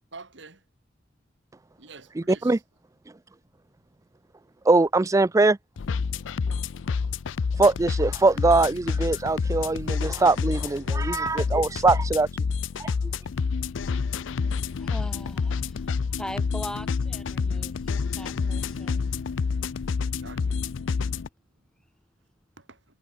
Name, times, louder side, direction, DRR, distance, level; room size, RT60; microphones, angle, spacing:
voice 1, 0.1-0.6 1.8-2.6 20.0-20.6 22.6-22.8, right 3 dB, 70° right, 3.7 m, -48 dB
voice 2, 2.2-2.6 4.7-5.6 7.6-12.3 12.8-12.9, right 3 dB, 15° right, 0.4 m, -22 dB
sound 1, 5.8-21.3, left 5 dB, 80° left, 0.5 m, -28 dB
voice 3, 14.8-17.7 18.1-19.1, left 1 dB, 5° left, 2.4 m, -40 dB
head